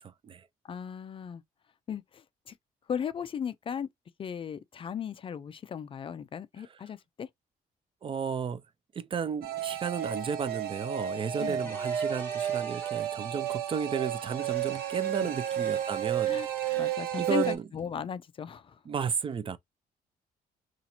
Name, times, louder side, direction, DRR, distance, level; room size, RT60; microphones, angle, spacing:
voice 1, 0.0-0.5 8.0-8.6 8.9-17.6 18.9-19.6, right 7 dB, 35° right, 0.4 m, -33 dB
voice 2, 0.6-1.4 1.9-2.5 2.9-3.9 4.2-7.3 11.4-11.6 15.2-15.3 16.3-16.5 16.8-18.8, left 7 dB, 35° left, 0.3 m, -36 dB
sound 1, 9.4-17.6, right 10 dB, 80° right, 0.6 m, -32 dB
sound 2, 10.9-11.0 11.4-13.1 14.0-16.8 17.1-17.8, left 2 dB, 15° left, 1.3 m, -50 dB
2.9 x 2.4 x 4.0 m
cardioid pair, 130°, 16 cm